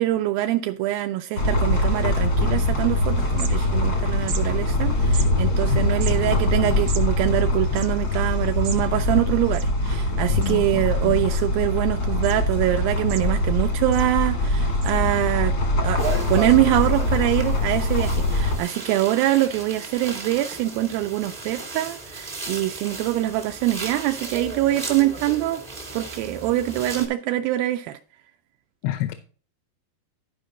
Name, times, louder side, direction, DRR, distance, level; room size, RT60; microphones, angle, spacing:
voice 1, 0.0-15.6 15.8-16.0 16.3-25.6 25.9-28.0, right 15 dB, 85° right, 2.1 m, -24 dB
sound 1, 1.4-18.6, left 1 dB, 55° left, 1.0 m, -23 dB
sound 2, 3.2-3.9 4.2-4.4 5.1-5.3 5.9-8.8 9.1-9.2 9.4-10.1 10.4-10.8 11.3-11.8 12.2-12.4 12.8-13.6 13.9-14.1 14.8-14.9, right 7 dB, 70° right, 2.5 m, -37 dB
voice 2, 5.7-6.4 10.3-11.2 28.8-29.1, left 11 dB, 90° left, 2.8 m, -29 dB
sound 3, 16.0-27.1, right 3 dB, 30° right, 0.7 m, -35 dB
12.0 x 5.1 x 3.8 m
omnidirectional pair, 4.7 m